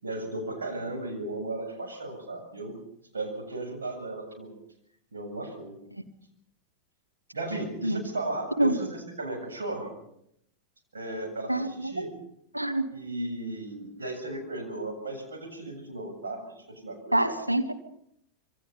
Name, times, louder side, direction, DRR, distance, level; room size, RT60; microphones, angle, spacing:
voice 1, 0.0-2.8 3.1-4.5 5.1-5.8 7.3-10.0 10.9-12.1 12.9-17.4, right 2 dB, 70° right, 3 dB, 7.5 m, -36 dB
voice 2, 11.5-12.1 12.5-12.9 17.1-17.7, right 1 dB, 85° right, 4 dB, 2.1 m, -26 dB
27.0 x 24.0 x 5.5 m, 0.75 s
figure-of-eight pair, 90°, 0 cm